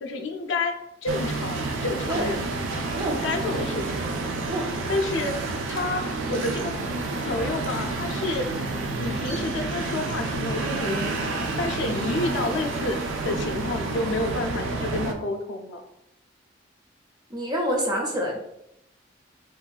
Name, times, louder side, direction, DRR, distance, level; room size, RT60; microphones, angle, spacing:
voice 1, 0.0-0.7 1.0-2.5 3.2-4.0 4.6-6.7 7.2-8.5 9.0-13.0 13.2-15.8, left 2 dB, 75° left, 4 dB, 0.4 m, -29 dB
sound 1, 1.1-15.1, right 3 dB, 90° right, 0.4 m, -29 dB
voice 2, 17.3-18.4, equal, 20° right, 0 dB, 0.4 m, -26 dB
3.4 x 2.2 x 2.3 m, 0.80 s
head